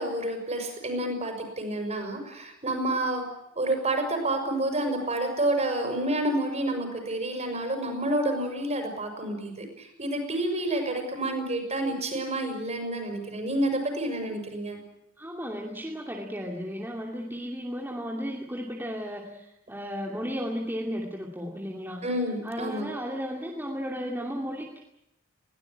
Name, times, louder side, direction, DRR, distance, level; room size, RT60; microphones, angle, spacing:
voice 1, 0.0-3.2 3.5-14.8 22.0-22.9, right 1 dB, 35° right, 5 dB, 6.3 m, -29 dB
voice 2, 15.2-22.0 22.4-24.8, equal, 10° right, -1 dB, 2.6 m, -34 dB
21.5 x 18.0 x 9.8 m, 0.84 s
head